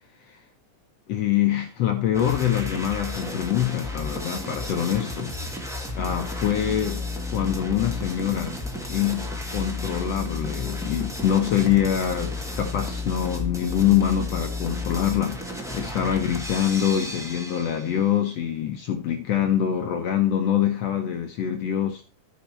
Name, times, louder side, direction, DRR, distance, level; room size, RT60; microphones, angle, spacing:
voice 1, 1.1-5.3 6.0-8.6 8.9-22.0, left 10 dB, 70° left, 1.6 m, -25 dB
sound 1, 2.1-18.1, left 2 dB, ahead, 0.8 m, -32 dB
14.0 x 5.4 x 4.4 m
omnidirectional pair, 3.7 m